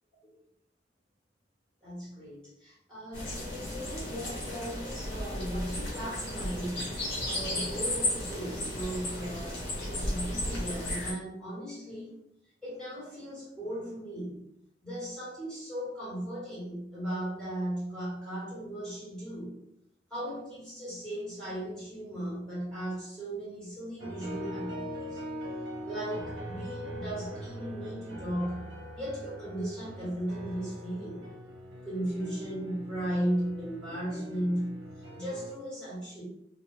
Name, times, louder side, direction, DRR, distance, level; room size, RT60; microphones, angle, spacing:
voice 1, 1.8-12.1 12.6-14.4 14.8-19.5 20.1-25.2 25.8-28.7 28.9-31.3 31.8-34.8 35.1-36.2, right 1 dB, 5° left, -9 dB, 1.5 m, -36 dB
sound 1, 3.1-11.1, left 1 dB, 65° left, 1.1 m, -34 dB
sound 2, 24.0-35.5, equal, 85° right, 0.8 m, -42 dB
2.5 x 2.4 x 3.2 m, 0.79 s
head